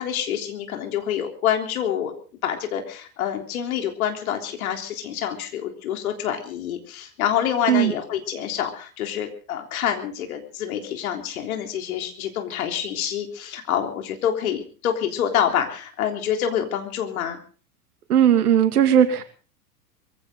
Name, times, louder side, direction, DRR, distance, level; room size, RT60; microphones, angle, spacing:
voice 1, 0.0-2.1 2.4-17.4, left 9 dB, 60° left, 4 dB, 3.7 m, -27 dB
voice 2, 18.1-19.3, right 9 dB, 70° right, 9 dB, 2.5 m, -17 dB
22.5 x 16.0 x 3.9 m, 0.40 s
figure-of-eight pair, 95°, 47 cm